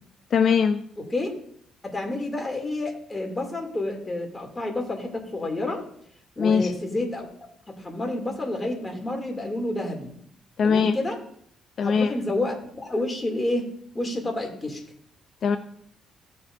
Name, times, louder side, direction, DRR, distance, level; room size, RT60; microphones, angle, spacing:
voice 1, 0.3-0.8 6.4-6.7 10.6-10.9 11.8-12.1 15.4-15.6, left 6 dB, 60° left, 8 dB, 0.5 m, -21 dB
voice 2, 1.0-1.3 1.8-5.8 6.4-7.3 7.7-10.1 10.6-11.2 11.8-14.8, left 2 dB, 20° left, 2 dB, 2.6 m, -29 dB
16.0 x 7.0 x 2.6 m, 0.65 s
cardioid pair, 90°, 0 cm